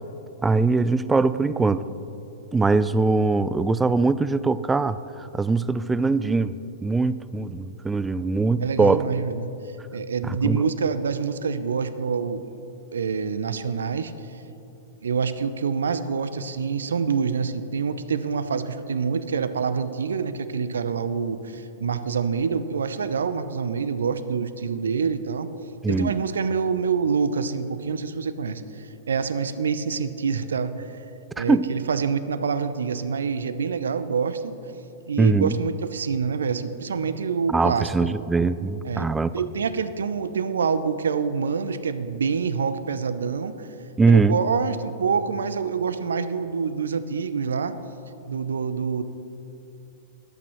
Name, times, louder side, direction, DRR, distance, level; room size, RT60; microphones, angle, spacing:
voice 1, 0.4-1.8 2.5-9.0 10.2-10.6 25.8-26.1 31.4-31.7 35.2-35.5 37.5-39.3 44.0-44.4, right 3 dB, 10° right, 16 dB, 0.3 m, -22 dB
voice 2, 8.6-9.5 9.9-12.5 12.9-14.1 15.0-25.5 25.9-30.9 31.4-34.5 35.1-38.1 38.8-43.7 44.1-47.8 48.3-49.0, right 5 dB, 75° right, 13 dB, 0.6 m, -26 dB
21.5 x 8.7 x 3.1 m, 2.8 s
figure-of-eight pair, 105°, 0 cm